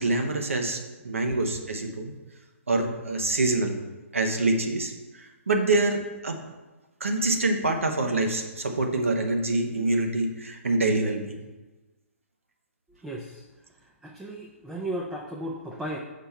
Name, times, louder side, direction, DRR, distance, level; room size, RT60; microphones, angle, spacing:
voice 1, 0.0-2.1 2.7-3.8 4.1-6.4 7.0-11.4, right 2 dB, 70° right, 4 dB, 1.0 m, -26 dB
voice 2, 13.0-13.4 14.0-16.0, right 1 dB, 5° right, -1 dB, 0.4 m, -35 dB
5.1 x 4.4 x 5.7 m, 1.2 s
figure-of-eight pair, 125°, 8 cm